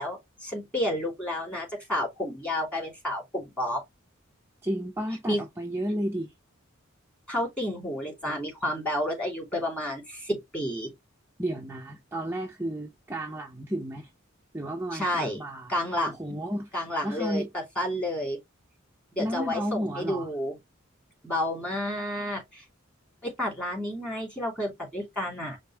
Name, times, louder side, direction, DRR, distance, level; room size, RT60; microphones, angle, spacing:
voice 1, 0.0-3.8 5.3-5.4 7.3-10.9 14.9-15.4 15.7-16.4 16.7-17.4 17.8-18.4 19.1-20.5 21.2-22.6 23.2-25.6, left 1 dB, 5° left, 2.8 m, -30 dB
voice 2, 4.6-6.3 11.4-14.1 14.5-15.8 16.1-16.8 17.0-17.5 19.2-20.3, right 1 dB, 10° right, 0.6 m, -32 dB
5.1 x 2.1 x 4.5 m
head